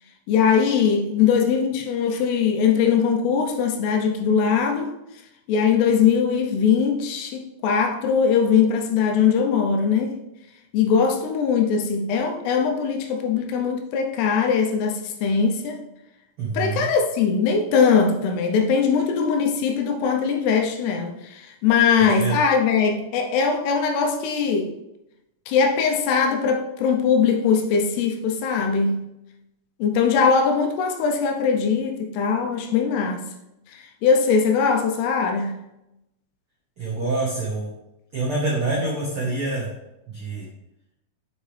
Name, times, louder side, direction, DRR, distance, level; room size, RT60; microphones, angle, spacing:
voice 1, 0.3-4.9 5.5-10.1 10.7-15.8 16.5-24.7 25.5-29.0 29.8-33.3 33.7-35.6, left 6 dB, 80° left, 2.8 m, -21 dB
voice 2, 16.4-16.8 22.2-22.4 36.8-37.7 38.1-39.7 40.1-40.4, right 3 dB, 85° right, 1.2 m, -26 dB
7.3 x 6.5 x 3.3 m
omnidirectional pair, 4.9 m